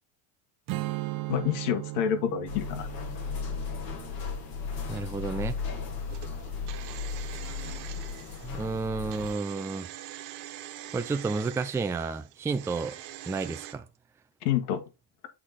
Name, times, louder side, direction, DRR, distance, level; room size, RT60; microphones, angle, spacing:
Strum, 0.7-6.0, right 19 dB, 50° right, 0.8 m, -38 dB
voice 1, 1.3-2.9 14.4-14.8, left 9 dB, 80° left, 1.7 m, -28 dB
sound 1, 2.5-9.3, left 5 dB, 50° left, 2.5 m, -35 dB
voice 2, 4.9-5.6 8.4-9.9 10.9-13.0 13.2-13.9, right 4 dB, 5° right, 0.4 m, -31 dB
sound 2, 6.1-13.7, right 13 dB, 70° right, 1.5 m, -44 dB
8.1 x 4.0 x 4.2 m
supercardioid pair, 125°, 44 cm